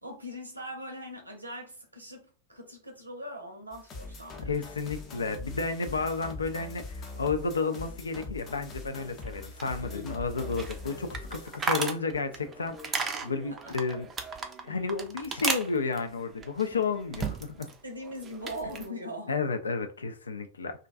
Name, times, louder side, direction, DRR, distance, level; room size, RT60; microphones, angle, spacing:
voice 1, 0.0-4.6 9.8-10.1 13.5-13.8 17.8-19.3, equal, 80° right, 0.7 m, -41 dB
sound 1, 3.7-11.6, left 3 dB, 30° left, 0.6 m, -42 dB
voice 2, 4.4-14.1 14.6-17.7 19.3-20.7, left 4 dB, 75° left, 0.3 m, -32 dB
sound 2, 9.2-17.8 18.0-18.9, right 4 dB, 20° right, 0.4 m, -36 dB
2.4 x 2.2 x 2.5 m
figure-of-eight pair, 90°, 0 cm